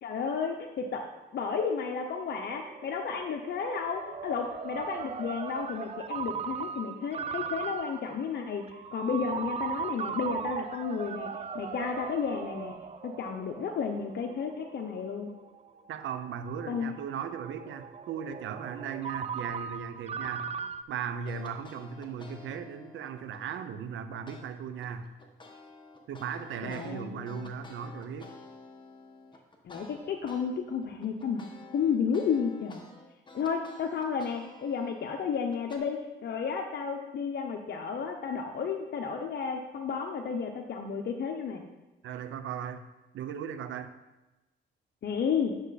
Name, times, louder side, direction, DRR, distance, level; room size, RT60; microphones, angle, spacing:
voice 1, 0.0-1.0 1.3-12.8 13.0-15.3 16.7-16.9 26.6-27.4 29.6-31.5 31.7-32.8 33.3-41.6 45.0-45.6, left 6 dB, 55° left, 3 dB, 0.9 m, -32 dB
Ringtone, 1.1-20.8, right 6 dB, 30° right, 0.5 m, -39 dB
voice 2, 15.9-20.5 20.9-25.0 26.1-28.3 42.0-42.9 43.1-43.9, right 7 dB, 75° right, 10 dB, 0.8 m, -37 dB
sound 1, 21.3-23.6 24.3-24.4 24.8-30.5 30.8-35.8, left 3 dB, 25° left, 1.4 m, -51 dB
9.8 x 6.4 x 4.1 m, 1.1 s
cardioid pair, 90°, 20 cm